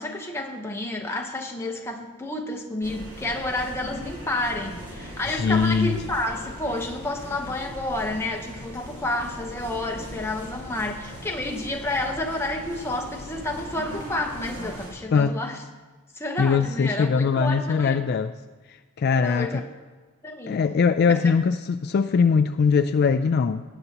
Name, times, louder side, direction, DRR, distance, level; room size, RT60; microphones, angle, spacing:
voice 1, 0.0-15.6 16.1-18.0 19.1-19.6 20.2-20.6, left 2 dB, 10° left, 1 dB, 1.0 m, -30 dB
sound 1, 2.8-14.9, equal, 50° right, 3.5 m, -39 dB
voice 2, 5.2-6.0 15.1-15.3 16.4-18.3 18.7-19.6 20.5-23.6, left 5 dB, 45° left, 7 dB, 0.3 m, -21 dB
18.5 x 8.0 x 2.9 m, 1.3 s
head